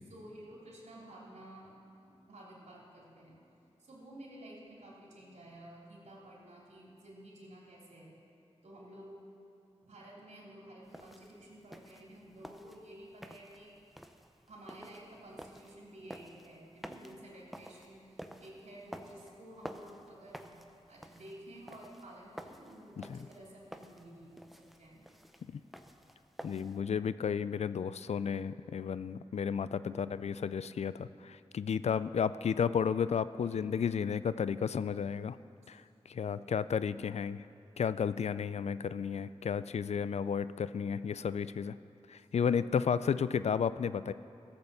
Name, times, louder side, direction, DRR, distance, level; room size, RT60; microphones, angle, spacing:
voice 1, 0.0-3.4 3.8-8.2 8.6-9.2 9.8-13.7 14.5-20.6 20.9-25.1 29.8-30.1 33.4-33.7 36.1-36.6, right 1 dB, 80° right, -4 dB, 3.2 m, -52 dB
sound 1, 10.8-26.8, equal, ahead, 0.7 m, -51 dB
voice 2, 26.4-35.4 35.7-35.8 36.1-37.4 37.8-41.8 42.1-44.1, left 7 dB, 70° left, 15 dB, 0.4 m, -33 dB
15.0 x 7.9 x 6.9 m, 2.6 s
cardioid pair, 55°, 12 cm